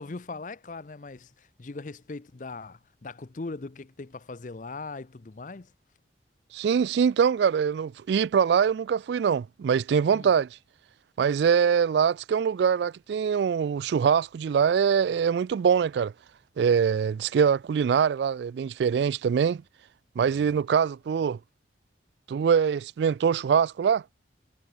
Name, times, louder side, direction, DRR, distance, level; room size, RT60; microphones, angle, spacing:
voice 1, 0.0-5.7 10.0-10.3 20.2-20.6, left 3 dB, 45° left, 0.6 m, -40 dB
voice 2, 6.5-10.5 11.2-16.1 16.6-19.6 20.2-21.4 22.3-24.0, right 7 dB, 65° right, 0.3 m, -23 dB
head